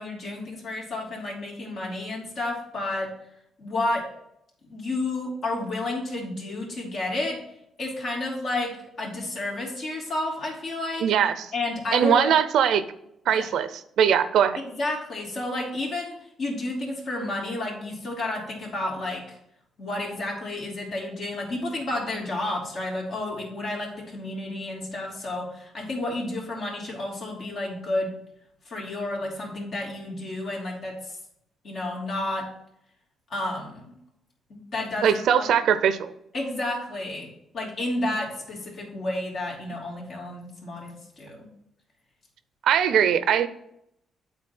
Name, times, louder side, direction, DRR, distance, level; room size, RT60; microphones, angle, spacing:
voice 1, 0.0-3.1 3.6-4.1 4.7-7.4 7.8-11.1 11.5-12.3 13.3-13.4 14.8-19.3 19.8-28.1 28.6-31.2 31.6-32.5 33.3-33.9 34.5-35.4 36.3-37.3 37.5-41.5, left 2 dB, 60° left, -2 dB, 3.1 m, -31 dB
voice 2, 11.0-11.5 11.9-12.8 13.3-14.6 35.0-36.1 42.6-43.5, right 8 dB, 75° right, 13 dB, 0.6 m, -21 dB
8.8 x 4.0 x 6.0 m, 0.77 s
cardioid pair, 90°, 0 cm